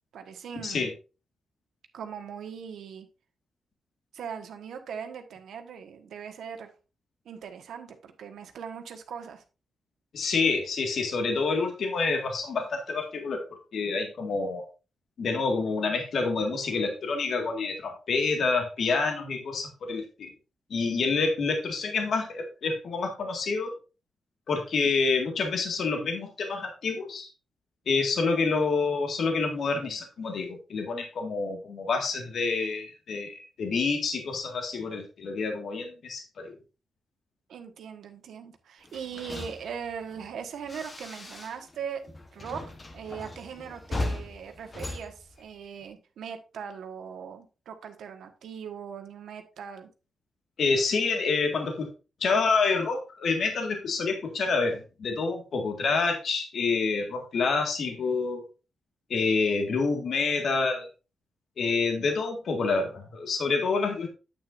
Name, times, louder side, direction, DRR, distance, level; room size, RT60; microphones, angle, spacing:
voice 1, 0.1-0.9 1.9-3.1 4.1-6.7 7.2-9.4 37.5-42.6 42.9-49.9, right 7 dB, 85° right, 6 dB, 1.4 m, -40 dB
voice 2, 10.1-14.7 15.2-20.3 20.7-23.8 24.5-27.3 27.9-36.6 50.6-51.9 52.2-58.4 59.1-60.9 61.6-64.1, left 4 dB, 55° left, 4 dB, 1.8 m, -28 dB
sound 1, 38.8-41.8 42.0-45.9, left 2 dB, 25° left, 1.1 m, -38 dB
9.2 x 8.7 x 2.6 m, 0.31 s
wide cardioid pair, 150°, 0 cm